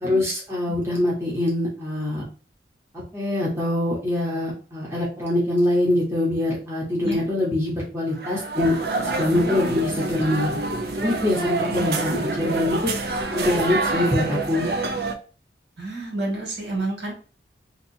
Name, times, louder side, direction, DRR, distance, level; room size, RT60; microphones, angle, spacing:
voice 1, 0.0-2.2 3.1-10.6 11.0-12.9 13.3-14.7, left 1 dB, 15° right, -5 dB, 0.9 m, -24 dB
sound 1, 8.1-15.2, right 2 dB, 60° right, 0.5 m, -27 dB
voice 2, 9.3-10.0 11.8-11.9 15.8-17.1, right 2 dB, 75° right, -1 dB, 1.6 m, -30 dB
2.7 x 2.4 x 4.1 m, 0.36 s
head